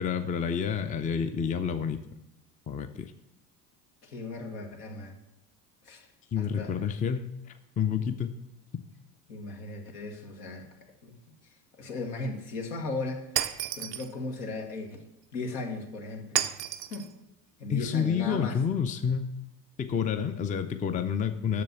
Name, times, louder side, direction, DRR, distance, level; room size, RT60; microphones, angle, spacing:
voice 1, 0.0-2.0 2.7-3.1 6.3-7.3 7.8-8.4 17.7-19.3 19.8-21.6, left 7 dB, 15° left, 9 dB, 0.5 m, -29 dB
voice 2, 4.0-5.2 5.9-6.1 6.4-6.8 9.3-11.2 11.8-13.3 13.8-14.9 15.3-16.4 16.9-17.1 17.6-18.6, left 3 dB, 70° left, 3 dB, 1.7 m, -36 dB
Shatter, 13.4-14.1 16.4-17.1, right 11 dB, 90° right, 0.6 m, -31 dB
7.6 x 6.8 x 6.8 m, 0.90 s
hypercardioid pair, 70°, 48 cm